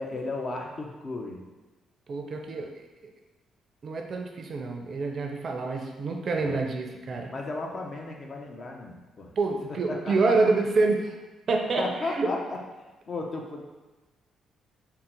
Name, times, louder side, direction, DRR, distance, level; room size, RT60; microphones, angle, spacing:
voice 1, 0.0-1.4 6.3-6.7 7.3-9.3 9.9-10.1 11.8-12.6 13.1-13.6, left 3 dB, 40° left, 1 dB, 0.6 m, -34 dB
voice 2, 2.1-2.7 3.8-7.3 9.4-11.1 11.5-11.9 12.2-12.3, right 3 dB, 50° right, 2 dB, 0.5 m, -27 dB
3.7 x 2.1 x 4.3 m, 1.1 s
cardioid pair, 90°, 0 cm